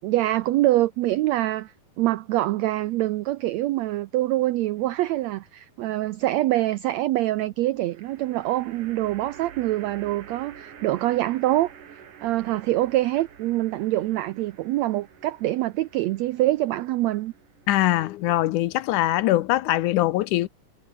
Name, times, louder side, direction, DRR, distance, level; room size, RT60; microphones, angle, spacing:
voice 1, 0.0-11.7 12.2-17.3, right 16 dB, 85° right, 1.5 m, -25 dB
sound 1, 4.8-5.4 7.9-19.3, right 8 dB, 70° right, 4.0 m, -48 dB
voice 2, 17.7-20.5, left 15 dB, 75° left, 2.1 m, -22 dB
omnidirectional pair, 3.9 m